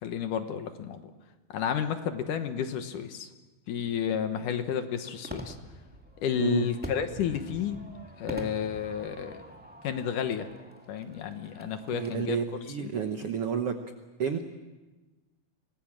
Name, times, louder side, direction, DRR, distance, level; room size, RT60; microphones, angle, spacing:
voice 1, 0.0-1.1 1.5-3.3 3.7-5.6 6.2-7.8 8.2-9.4 9.8-10.5 10.9-12.4 12.8-12.9, left 8 dB, 65° left, 8 dB, 2.5 m, -31 dB
Fireworks, 3.8-12.1, right 1 dB, 5° right, 1.1 m, -45 dB
voice 2, 6.3-6.7 11.9-13.8 14.2-14.5, right 7 dB, 80° right, 6 dB, 1.3 m, -30 dB
25.5 x 19.5 x 7.5 m, 1.2 s
omnidirectional pair, 4.3 m